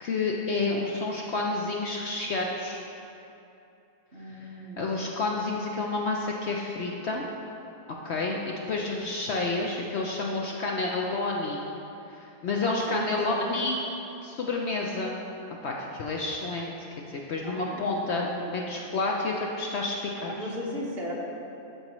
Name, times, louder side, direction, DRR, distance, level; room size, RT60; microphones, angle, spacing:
voice 1, 0.0-2.8 4.2-4.5 4.8-7.2 8.0-11.6 12.1-13.8 14.2-15.2 15.6-16.7 17.1-20.5, left 3 dB, 60° left, -1 dB, 0.8 m, -30 dB
voice 2, 0.5-1.0 4.1-4.8 12.6-13.4 17.4-17.9 18.2-18.5 20.2-21.1, equal, 45° right, -4 dB, 1.3 m, -36 dB
13.5 x 5.4 x 3.0 m, 2.8 s
omnidirectional pair, 1.5 m